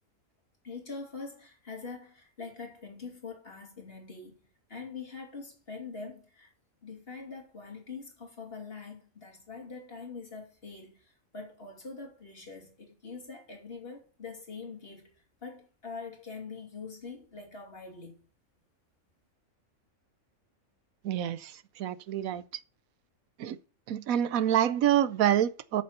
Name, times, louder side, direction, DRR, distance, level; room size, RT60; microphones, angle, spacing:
voice 1, 0.6-4.4 4.7-6.5 6.8-15.1 15.4-18.2, left 4 dB, 45° left, 3.0 m, -44 dB
voice 2, 21.0-21.5 21.8-22.4 23.4-23.6 23.9-25.8, right 11 dB, 90° right, 1.2 m, -27 dB
8.7 x 6.8 x 6.7 m
omnidirectional pair, 1.4 m